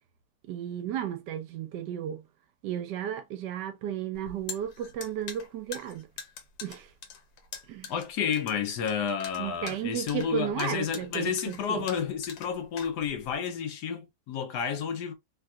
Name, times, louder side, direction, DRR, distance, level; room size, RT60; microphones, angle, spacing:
voice 1, 0.5-2.2 2.6-6.1 6.6-6.9 7.7-7.9 9.4-11.8, right 10 dB, 75° right, 1.1 m, -34 dB
sound 1, 4.1-13.4, left 6 dB, 85° left, 1.5 m, -43 dB
voice 2, 7.9-15.1, left 7 dB, 70° left, 1.2 m, -31 dB
3.3 x 2.3 x 2.5 m
omnidirectional pair, 2.0 m